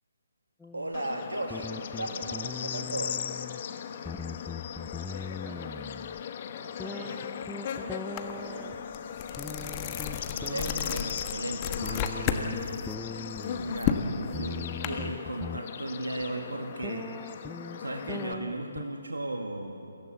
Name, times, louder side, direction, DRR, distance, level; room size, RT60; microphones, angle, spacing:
sound 1, 0.6-0.9 1.5-3.6 3.9-6.2 6.8-8.8 9.4-11.2 11.8-13.8 14.3-15.6 16.2-16.3 16.8-18.8, left 4 dB, 5° left, 0.4 m, -41 dB
voice 1, 0.7-3.2 10.3-12.7 13.4-14.0 14.4-17.1 17.8-19.8, right 2 dB, 85° right, 3 dB, 1.8 m, -36 dB
Bird / Insect, 0.9-18.3, left 8 dB, 40° left, 1.1 m, -38 dB
voice 2, 5.0-5.9 6.6-8.8, right 3 dB, 20° right, -1 dB, 2.6 m, -49 dB
sound 2, 8.2-8.3 8.7-12.5 12.8-14.9, left 9 dB, 25° left, 1.3 m, -32 dB
23.5 x 16.0 x 7.8 m, 2.7 s
figure-of-eight pair, 145°, 0 cm